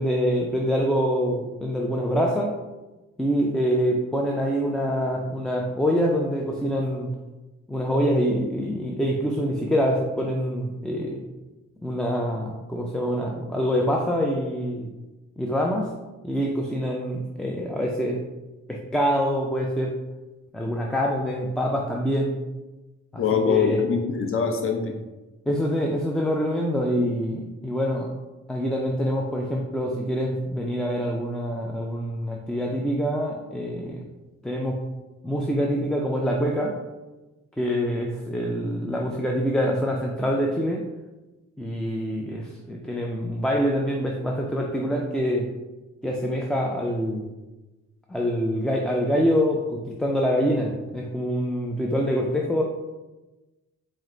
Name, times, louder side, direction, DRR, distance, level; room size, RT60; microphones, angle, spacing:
voice 1, 0.0-2.5 3.2-7.1 7.7-11.2 11.8-14.9 15.4-15.9 16.2-18.2 18.7-19.9 20.5-22.4 23.1-23.8 25.5-28.1 28.5-34.1 34.4-34.8 35.2-36.8 37.6-40.8 41.6-45.5 46.0-47.3 48.1-52.6, equal, ahead, -1 dB, 0.3 m, -25 dB
voice 2, 23.1-24.9, left 6 dB, 45° left, 3 dB, 0.7 m, -23 dB
4.3 x 2.1 x 3.7 m, 1.1 s
cardioid pair, 90°, 30 cm